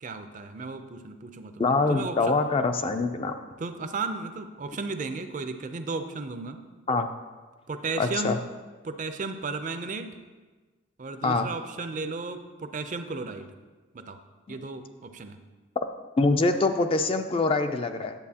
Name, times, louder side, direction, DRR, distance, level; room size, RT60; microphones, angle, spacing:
voice 1, 0.0-2.4 3.6-6.6 7.7-8.4 8.8-10.1 11.0-13.5 13.9-14.2 14.5-15.4, right 3 dB, 40° right, 8 dB, 0.4 m, -34 dB
voice 2, 1.6-3.3 6.9-7.1 8.0-8.4 11.2-11.5 14.5-14.6 16.2-18.1, left 3 dB, 25° left, 7 dB, 0.3 m, -24 dB
10.5 x 7.8 x 2.8 m, 1.3 s
head